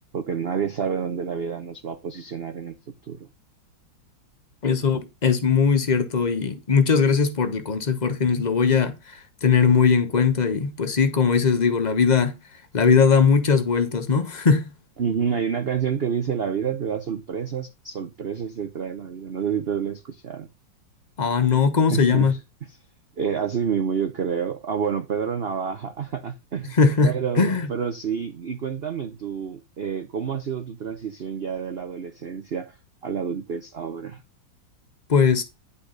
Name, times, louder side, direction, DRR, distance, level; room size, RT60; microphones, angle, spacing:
voice 1, 0.1-2.8 3.1-3.3 15.0-20.5 21.9-22.4 23.2-26.7 27.0-32.8 33.0-34.2, right 7 dB, 50° right, 0.7 m, -28 dB
voice 2, 4.6-12.3 12.7-14.7 21.2-22.3 26.7-27.1 27.4-27.7 35.1-35.4, left 5 dB, 30° left, 0.8 m, -20 dB
10.0 x 5.6 x 3.9 m
omnidirectional pair, 2.0 m